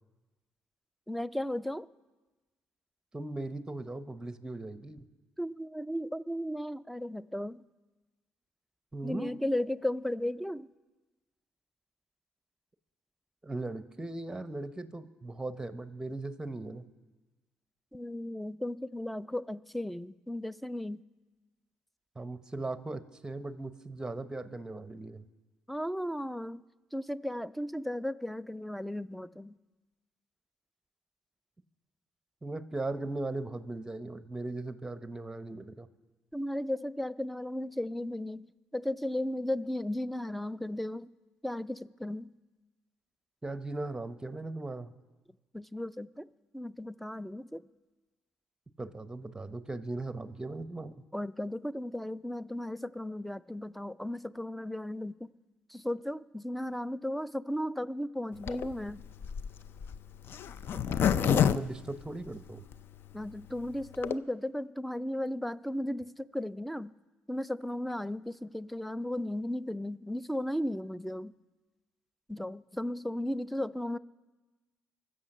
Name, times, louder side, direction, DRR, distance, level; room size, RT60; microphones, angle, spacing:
voice 1, 1.1-1.9 5.4-7.6 9.0-10.7 17.9-21.0 25.7-26.6 26.9-29.6 36.3-38.5 38.7-41.1 41.4-42.3 45.5-46.3 46.5-47.6 51.1-55.3 55.7-59.0 63.1-66.9 67.3-71.3 72.3-74.0, left 1 dB, ahead, 17 dB, 0.4 m, -35 dB
voice 2, 3.1-5.0 8.9-9.4 13.4-16.9 22.2-25.2 32.4-35.9 43.4-44.9 48.8-51.0 60.9-62.7, right 2 dB, 15° right, 12 dB, 0.8 m, -38 dB
Zipper (clothing), 58.4-62.7 63.2-63.3 63.5-63.6 63.8-64.2, left 8 dB, 60° left, 0.4 m, -28 dB
22.5 x 7.8 x 6.6 m, 1.2 s
cardioid pair, 85°, 4 cm